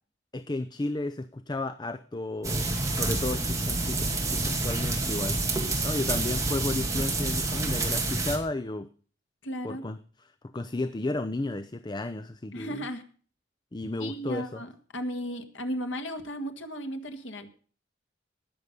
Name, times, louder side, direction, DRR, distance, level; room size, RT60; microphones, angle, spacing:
voice 1, 0.3-5.4 5.8-8.9 9.6-10.0 10.5-12.9 13.7-14.6, left 2 dB, 25° left, 11 dB, 0.5 m, -33 dB
sound 1, 2.4-8.4, right 2 dB, 15° right, 2.4 m, -28 dB
voice 2, 9.4-9.8 12.5-13.0 14.0-17.5, equal, 85° left, 6 dB, 1.8 m, -35 dB
19.0 x 6.9 x 5.3 m, 0.42 s
head